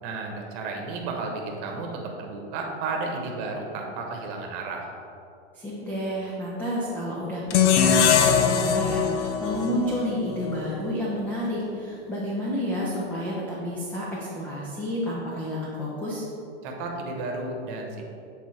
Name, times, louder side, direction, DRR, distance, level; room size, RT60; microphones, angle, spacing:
voice 1, 0.0-4.9 16.6-18.0, right 3 dB, 40° right, 1 dB, 1.0 m, -33 dB
voice 2, 5.5-16.2, equal, 5° left, -6 dB, 0.3 m, -30 dB
sound 1, 7.5-10.7, left 7 dB, 75° left, 0.6 m, -22 dB
7.7 x 4.0 x 3.1 m, 2.6 s
hypercardioid pair, 135°, 35 cm